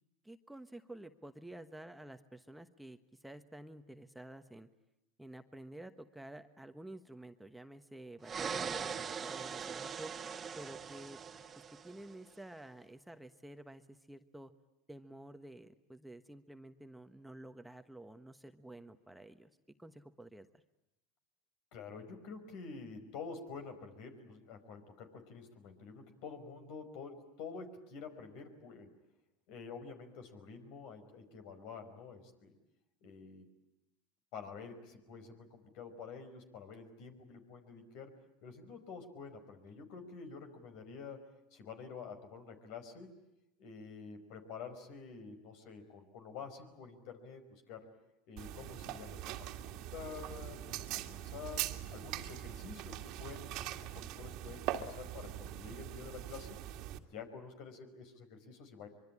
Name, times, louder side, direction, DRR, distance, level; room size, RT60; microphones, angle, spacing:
voice 1, 0.2-4.7 5.2-10.1 10.6-11.2 11.6-14.5 14.9-19.5 19.8-20.6, right 1 dB, 5° right, 8 dB, 1.3 m, -51 dB
Descontamination chamber sound effect, 8.2-12.1, right 6 dB, 30° right, 1.5 m, -41 dB
voice 2, 21.7-28.9 29.5-32.6 33.0-33.4 34.3-38.1 38.4-41.2 41.5-43.1 43.6-47.8 48.3-51.7 51.9-56.6 57.1-58.9, left 5 dB, 60° left, 8 dB, 5.2 m, -48 dB
taking-eyeglasses-off-spectacle-case-quiet-closing-case, 48.4-57.0, right 12 dB, 60° right, 2.0 m, -42 dB
24.5 x 23.5 x 9.9 m, 0.89 s
hypercardioid pair, 100°, 0 cm